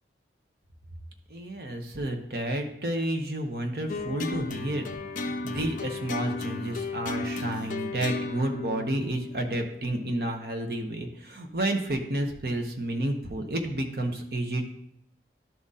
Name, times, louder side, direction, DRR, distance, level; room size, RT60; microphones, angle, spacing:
voice 1, 1.3-4.9 5.2-14.7, right 1 dB, 55° right, 4 dB, 1.0 m, -31 dB
sound 1, 3.9-10.4, left 3 dB, 45° left, 0.5 m, -34 dB
12.0 x 4.1 x 3.7 m, 0.73 s
head